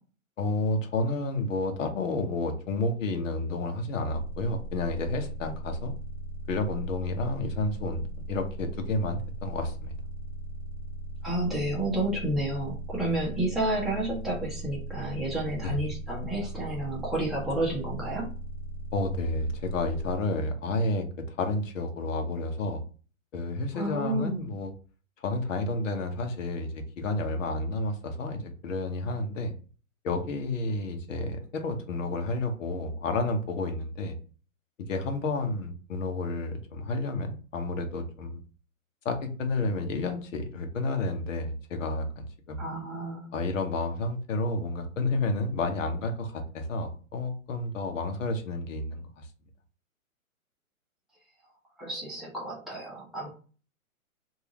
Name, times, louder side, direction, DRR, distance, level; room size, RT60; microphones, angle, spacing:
voice 1, 0.4-5.9 6.5-9.9 15.6-15.9 18.9-22.8 23.3-24.7 25.2-29.5 30.0-34.2 34.9-38.4 39.0-42.6 43.3-49.3, left 2 dB, 65° left, 5 dB, 1.0 m, -30 dB
sound 1, 4.1-20.2, right 1 dB, 20° left, 1.7 m, -38 dB
voice 2, 11.2-18.3 23.7-24.4 42.6-43.3 51.8-53.3, right 1 dB, ahead, -6 dB, 0.9 m, -30 dB
3.4 x 2.7 x 3.0 m, 0.37 s
hypercardioid pair, 140°, 42 cm